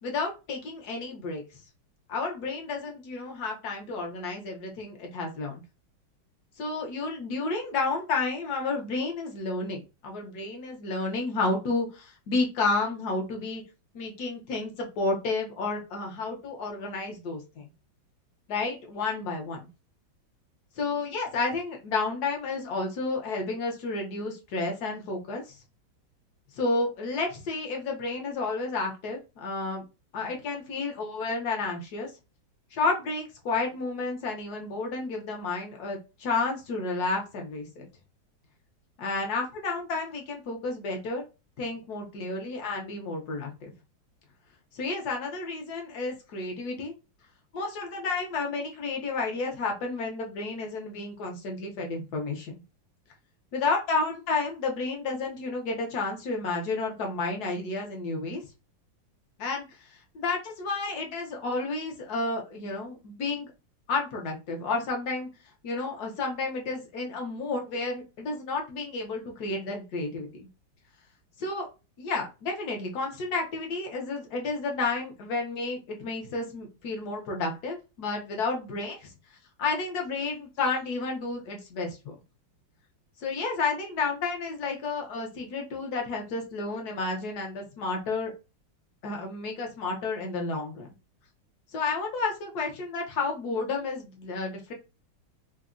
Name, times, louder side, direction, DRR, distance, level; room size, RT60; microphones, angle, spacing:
voice 1, 0.0-1.4 2.1-5.6 6.6-13.6 13.9-17.6 18.5-19.7 20.8-25.6 26.5-29.8 30.1-32.1 32.7-37.8 39.0-41.2 41.6-43.7 44.7-46.9 47.5-52.6 53.5-58.4 59.4-63.5 63.9-65.3 65.6-70.5 71.4-71.7 72.0-79.1 79.6-82.1 83.2-88.3 89.0-90.9 91.7-94.7, left 3 dB, 65° left, 2 dB, 1.1 m, -31 dB
3.5 x 2.1 x 2.4 m, 0.28 s
omnidirectional pair, 2.2 m